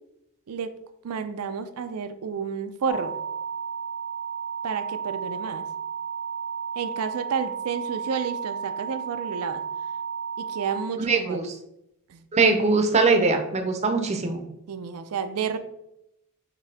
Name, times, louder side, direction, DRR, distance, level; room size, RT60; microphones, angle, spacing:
voice 1, 1.0-3.2 4.6-5.7 6.8-9.6 10.4-11.4 12.1-12.3 14.7-15.6, right 6 dB, 80° right, 0.4 m, -30 dB
sound 1, 2.9-10.8, right 6 dB, 75° left, 0.9 m, -33 dB
voice 2, 11.0-11.4 12.3-14.4, right 3 dB, 30° right, 0.6 m, -21 dB
5.9 x 2.7 x 3.4 m
head